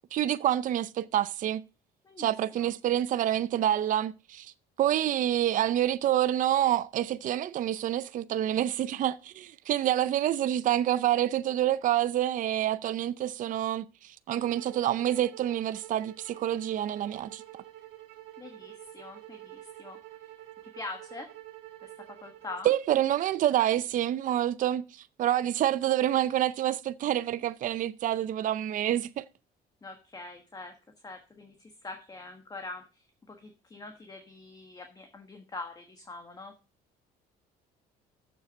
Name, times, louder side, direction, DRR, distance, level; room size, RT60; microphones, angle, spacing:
voice 1, 0.1-1.6 2.2-4.5 4.8-17.4 22.6-29.2, right 12 dB, 50° right, 0.5 m, -27 dB
voice 2, 2.0-2.7 18.4-20.0 20.6-21.3 21.8-22.7 29.8-30.8 31.0-36.5, left 3 dB, 20° left, 1.3 m, -44 dB
sound 1, 14.3-22.7, right 14 dB, 85° right, 2.2 m, -48 dB
7.2 x 6.9 x 6.2 m
cardioid pair, 110°, 17 cm